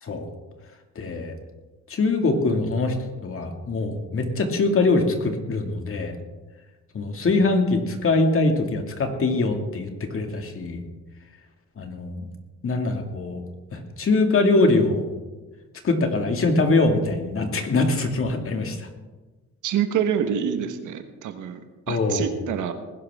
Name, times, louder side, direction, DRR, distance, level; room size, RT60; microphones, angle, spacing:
voice 1, 1.0-1.4 1.9-3.0 3.2-6.2 6.9-10.8 11.8-12.3 12.6-13.4 13.7-15.1 15.8-18.9 21.9-22.3, left 3 dB, 45° left, 4 dB, 2.2 m, -23 dB
voice 2, 19.6-21.6 21.9-22.7, right 8 dB, 80° right, 7 dB, 1.4 m, -26 dB
20.0 x 11.5 x 3.6 m, 1.2 s
cardioid pair, 90°, 30 cm